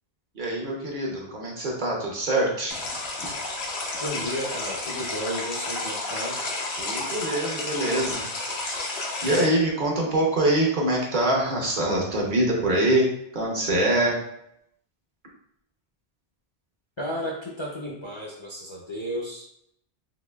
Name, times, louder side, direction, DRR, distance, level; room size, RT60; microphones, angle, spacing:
voice 1, 0.3-2.9 6.8-8.8 9.2-14.2, right 1 dB, 55° right, -2 dB, 0.9 m, -24 dB
sound 1, 2.7-9.5, left 2 dB, 85° left, 1.0 m, -31 dB
voice 2, 4.0-6.4 17.0-19.5, equal, 40° left, -4 dB, 0.5 m, -33 dB
4.0 x 2.8 x 2.2 m, 0.75 s
omnidirectional pair, 1.1 m